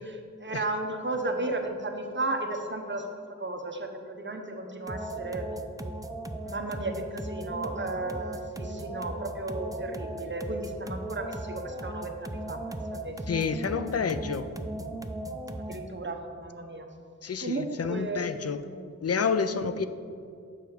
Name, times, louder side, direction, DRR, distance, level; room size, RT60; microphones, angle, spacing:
voice 1, 0.0-3.0 3.4-5.5 6.4-13.2 15.7-16.9 17.4-18.8 19.5-19.6, right 2 dB, 40° right, 3 dB, 0.8 m, -34 dB
sound 1, 4.9-15.9, right 1 dB, 10° right, 0.4 m, -37 dB
voice 2, 13.3-14.5 17.2-18.6 19.0-19.9, left 5 dB, 55° left, 11 dB, 0.4 m, -29 dB
6.9 x 5.8 x 4.7 m, 2.4 s
wide cardioid pair, 55°, 30 cm